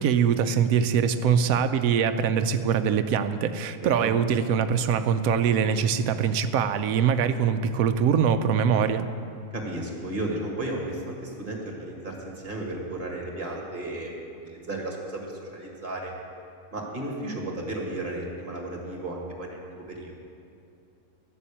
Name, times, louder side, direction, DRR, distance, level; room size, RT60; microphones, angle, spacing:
voice 1, 0.0-9.0, right 7 dB, 85° right, 9 dB, 1.1 m, -23 dB
voice 2, 3.8-4.1 9.5-16.1 16.7-20.1, right 1 dB, 35° right, -1 dB, 2.3 m, -34 dB
13.0 x 7.1 x 8.5 m, 2.6 s
omnidirectional pair, 1.5 m